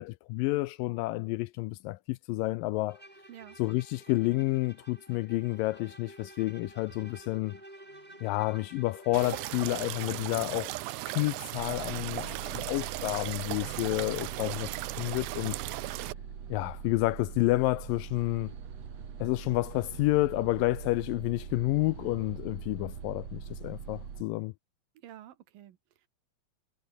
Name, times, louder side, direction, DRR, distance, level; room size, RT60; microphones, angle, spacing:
voice 1, 0.0-3.0 3.6-7.6 8.2-10.7 11.1-14.7 15.0-15.6 16.5-18.5 19.2-24.5, left 19 dB, 80° left, 2.1 m, -30 dB
Bowed string instrument, 2.9-9.8, right 1 dB, 10° right, 5.0 m, -52 dB
sound 1, 9.1-16.1, right 18 dB, 90° right, 2.6 m, -37 dB
sound 2, 11.6-24.2, right 7 dB, 50° right, 3.4 m, -43 dB
voice 2, 24.9-26.1, right 12 dB, 75° right, 3.2 m, -50 dB
omnidirectional pair, 4.2 m